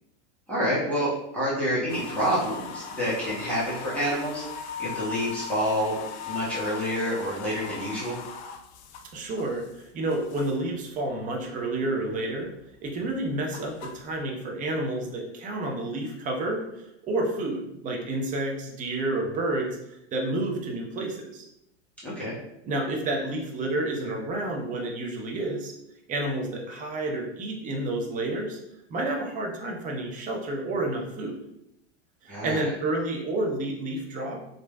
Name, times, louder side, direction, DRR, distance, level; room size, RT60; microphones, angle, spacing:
voice 1, 0.5-6.0 6.2-8.2 22.0-22.4 32.3-32.6, equal, 5° left, -9 dB, 1.1 m, -28 dB
sound 1, 1.9-10.7 11.1-11.8 12.1-14.2, left 6 dB, 65° left, 0.5 m, -39 dB
voice 2, 9.1-12.5 12.8-21.5 22.7-25.7 26.1-28.6 28.9-31.4 32.2-34.4, right 2 dB, 20° right, 0 dB, 0.6 m, -30 dB
3.0 x 2.5 x 2.2 m, 0.81 s
hypercardioid pair, 95°, 36 cm